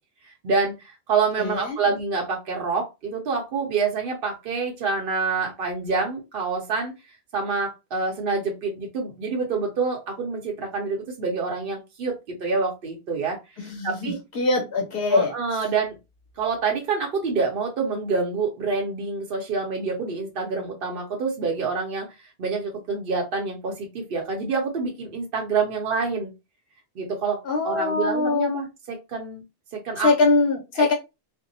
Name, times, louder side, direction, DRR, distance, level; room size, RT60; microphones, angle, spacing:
voice 1, 0.2-6.9 7.3-13.4 13.8-14.2 15.1-15.9 16.4-22.1 22.4-26.3 27.0-29.4 29.7-30.1 30.8-30.9, right 4 dB, 65° right, 0.8 m, -27 dB
voice 2, 1.4-1.8 13.6-15.3 27.4-28.6 30.0-30.9, left 3 dB, 65° left, 1.1 m, -22 dB
2.6 x 2.1 x 2.6 m
omnidirectional pair, 1.1 m